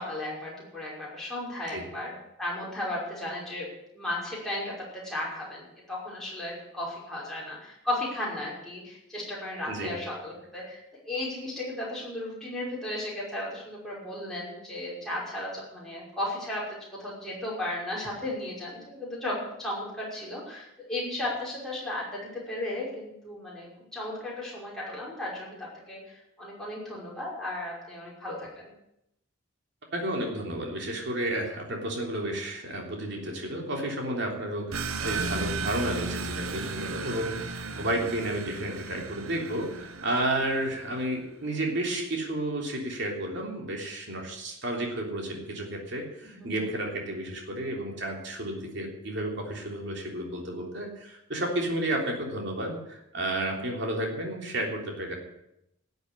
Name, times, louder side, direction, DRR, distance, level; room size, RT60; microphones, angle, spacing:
voice 1, 0.0-3.7 3.9-10.8 11.1-25.5 25.9-28.7 46.3-46.6, left 1 dB, ahead, -7 dB, 5.8 m, -35 dB
voice 2, 29.9-55.2, right 1 dB, 55° right, 0 dB, 3.4 m, -32 dB
sound 1, 34.7-41.0, right 4 dB, 90° right, 0.9 m, -35 dB
13.5 x 8.0 x 9.8 m, 0.83 s
head